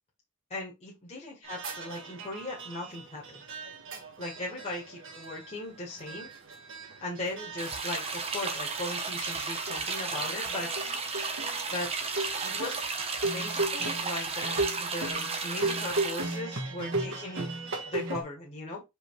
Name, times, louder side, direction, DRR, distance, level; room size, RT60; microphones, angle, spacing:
voice 1, 0.5-3.4 4.2-6.3 7.0-10.7 11.7-11.9 12.4-12.8 13.2-17.5 17.8-18.8, left 2 dB, 30° left, -4 dB, 2.0 m, -38 dB
sound 1, 1.4-18.2, right 2 dB, 60° right, 1.9 m, -37 dB
sound 2, 7.6-16.4, right 4 dB, 25° right, 1.2 m, -34 dB
5.4 x 3.8 x 4.9 m, 0.22 s
head